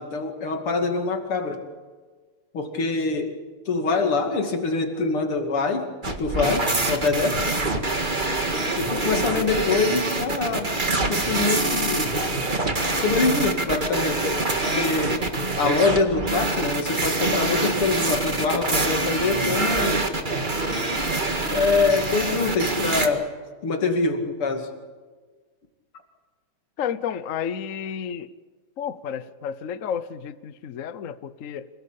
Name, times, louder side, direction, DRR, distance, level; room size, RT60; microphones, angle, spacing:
voice 1, 0.0-1.6 2.5-3.4 3.7-7.5 8.8-10.7 11.0-12.3 12.9-14.3 14.7-15.2 15.5-20.0 21.5-23.3 23.6-24.7, left 3 dB, 90° left, 4 dB, 3.4 m, -24 dB
sound 1, 6.0-23.1, right 2 dB, 25° right, 1.8 m, -25 dB
voice 2, 26.8-28.3 28.8-31.7, left 8 dB, 55° left, 13 dB, 0.9 m, -31 dB
26.5 x 18.0 x 8.5 m, 1.4 s
omnidirectional pair, 2.3 m